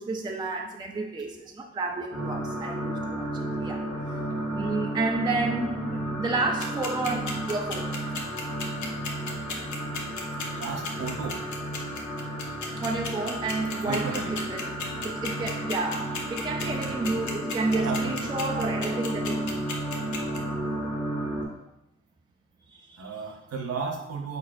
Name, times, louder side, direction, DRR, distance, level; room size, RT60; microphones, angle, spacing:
voice 1, 0.0-4.2 4.5-8.2 12.8-19.6 22.7-23.2, right 3 dB, 15° right, 0.4 m, -31 dB
sound 1, 2.1-21.4, right 1 dB, 10° left, 1.0 m, -33 dB
sound 2, 6.6-20.4, left 6 dB, 70° left, 0.9 m, -34 dB
voice 2, 10.5-11.4 13.9-14.3 16.8-17.1 17.7-18.4 23.0-24.4, right 4 dB, 55° right, 1.0 m, -34 dB
4.2 x 4.2 x 2.5 m
cardioid pair, 90°, 30 cm